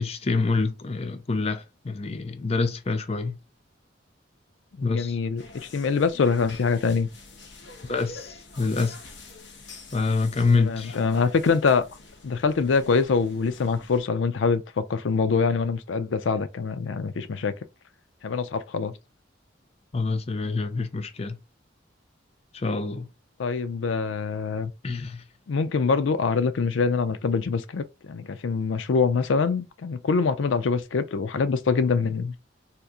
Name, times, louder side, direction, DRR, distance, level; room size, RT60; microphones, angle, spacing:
voice 1, 0.0-3.3 4.8-5.2 7.8-9.0 9.9-11.0 19.9-21.4 22.5-23.1 24.8-25.2, left 3 dB, 35° left, 0.5 m, -26 dB
voice 2, 4.7-7.1 10.5-11.9 12.2-17.5 18.2-18.9 23.4-24.7 25.5-32.3, left 5 dB, 85° left, 0.4 m, -24 dB
sound 1, 5.4-14.0, left 3 dB, 70° left, 1.0 m, -46 dB
3.5 x 2.8 x 2.5 m
head